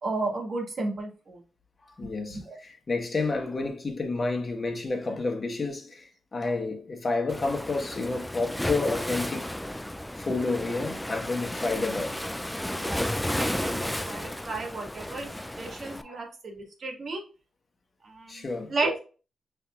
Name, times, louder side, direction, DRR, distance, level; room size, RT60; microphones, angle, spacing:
voice 1, 0.0-1.4 2.5-2.6 12.7-15.3 15.6-17.2 18.0-19.0, right 3 dB, 60° right, 1.7 m, -33 dB
voice 2, 1.9-9.7 10.2-12.2 14.0-14.2 16.0-16.3 18.3-18.7, left 3 dB, 40° left, 1.2 m, -30 dB
Waves surf, 7.3-16.0, left 1 dB, 10° left, 0.4 m, -33 dB
5.4 x 3.5 x 2.4 m
supercardioid pair, 50°, 0 cm